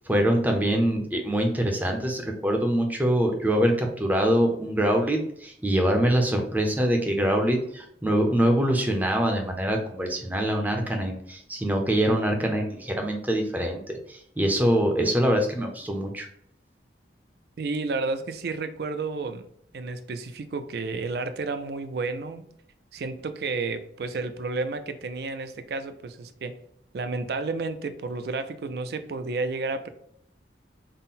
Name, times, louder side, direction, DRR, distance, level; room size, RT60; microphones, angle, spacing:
voice 1, 0.1-16.3, right 1 dB, 10° right, 0.5 m, -24 dB
voice 2, 17.6-19.5 19.7-22.4 22.9-26.6 26.9-29.9, right 3 dB, 60° right, 0.4 m, -31 dB
3.7 x 2.1 x 4.0 m
head